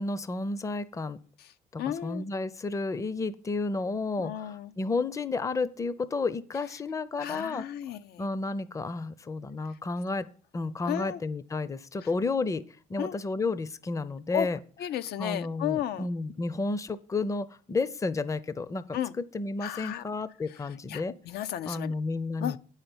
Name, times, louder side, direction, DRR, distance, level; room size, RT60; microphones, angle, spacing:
voice 1, 0.0-1.2 1.7-7.6 8.2-10.3 10.5-12.6 12.9-14.6 15.2-19.0 19.3-21.1 21.7-22.6, left 3 dB, 20° left, 0.6 m, -31 dB
voice 2, 1.8-2.3 4.2-4.7 7.2-8.3 10.9-11.2 13.0-13.2 14.3-14.5 14.8-16.1 18.9-19.1 19.6-20.0 20.5-20.6 20.9-21.9 22.4-22.6, left 11 dB, 70° left, 0.6 m, -33 dB
8.6 x 5.7 x 7.9 m
cardioid pair, 110°, 17 cm